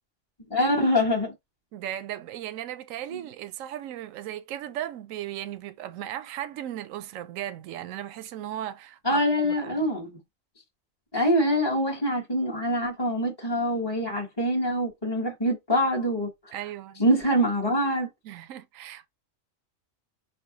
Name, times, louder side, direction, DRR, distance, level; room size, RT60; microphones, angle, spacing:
voice 1, 0.5-1.3 3.1-3.2 9.0-10.2 11.1-16.5 17.0-18.1, equal, 20° left, 1.0 m, -25 dB
voice 2, 1.7-9.8 16.5-17.0 18.2-19.1, right 12 dB, 80° right, 1.0 m, -36 dB
5.4 x 3.5 x 2.8 m
omnidirectional pair, 1.4 m